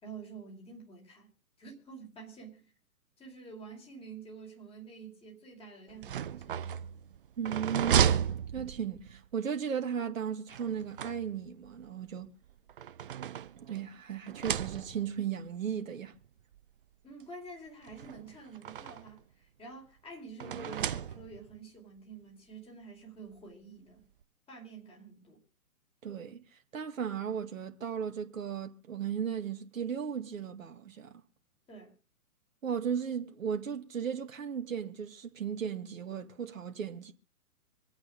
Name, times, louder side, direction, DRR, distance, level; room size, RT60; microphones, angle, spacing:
voice 1, 0.0-1.3 1.6-2.7 3.2-6.9 17.0-24.0 24.5-25.4 31.7-31.9, right 4 dB, 10° left, 4.4 m, -48 dB
sound 1, 5.9-9.2 10.5-11.7 12.5-13.9 14.3-15.2 16.1-16.2 16.6-16.7 17.8-19.2 20.4-21.6, right 9 dB, 35° right, 0.6 m, -33 dB
voice 2, 7.4-12.3 13.6-16.1 26.0-26.4 26.7-31.2 32.6-37.1, right 8 dB, 60° right, 2.0 m, -36 dB
26.0 x 8.8 x 3.7 m
figure-of-eight pair, 125°, 45 cm